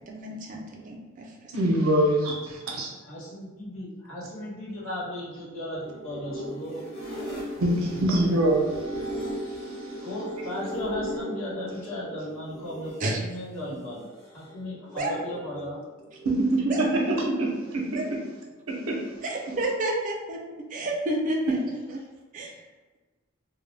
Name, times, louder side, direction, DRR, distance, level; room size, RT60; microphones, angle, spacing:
voice 1, 0.1-1.3 13.0-13.2 15.0-15.1 16.7-16.8 18.0-18.1 19.2-22.0 22.3-22.6, right 1 dB, 40° right, -1 dB, 0.4 m, -30 dB
voice 2, 1.5-2.9 7.6-8.8 9.3-9.9 16.2-18.2 18.7-19.0, right 1 dB, 90° right, -1 dB, 0.6 m, -25 dB
voice 3, 3.1-6.8 10.0-15.8, left 1 dB, 90° left, -8 dB, 1.1 m, -36 dB
sound 1, 5.8-13.1 14.1-15.6 15.9-16.6 19.1-19.9, equal, 30° left, 0.8 m, -37 dB
2.2 x 2.0 x 3.2 m, 1.2 s
head